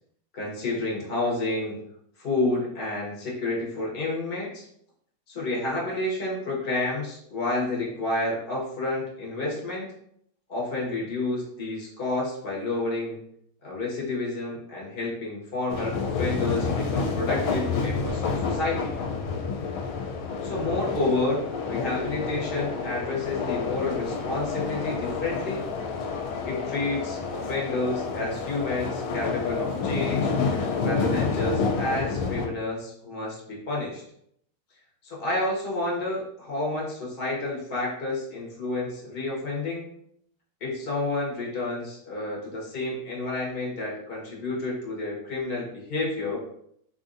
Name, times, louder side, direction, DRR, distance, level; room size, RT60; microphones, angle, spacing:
voice 1, 0.3-1.7 2.2-4.6 5.3-9.9 10.5-13.2 13.6-18.9 20.4-25.6 26.5-30.3 30.8-34.0 35.0-39.9 40.6-46.4, left 2 dB, 45° left, -4 dB, 0.7 m, -30 dB
sound 1, 15.7-32.5, left 4 dB, 75° left, 1.3 m, -29 dB
3.9 x 2.6 x 2.5 m, 0.71 s
omnidirectional pair, 2.4 m